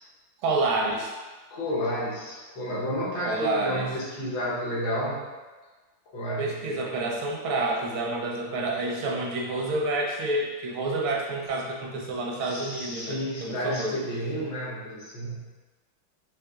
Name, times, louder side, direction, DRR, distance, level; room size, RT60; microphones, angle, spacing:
voice 1, 0.4-1.1 3.2-3.9 6.4-14.0, right 2 dB, 80° right, -1 dB, 1.5 m, -28 dB
voice 2, 1.5-5.3 6.1-6.7 12.4-15.5, equal, 70° left, -6 dB, 1.6 m, -31 dB
5.2 x 3.2 x 2.3 m, 1.3 s
omnidirectional pair, 2.2 m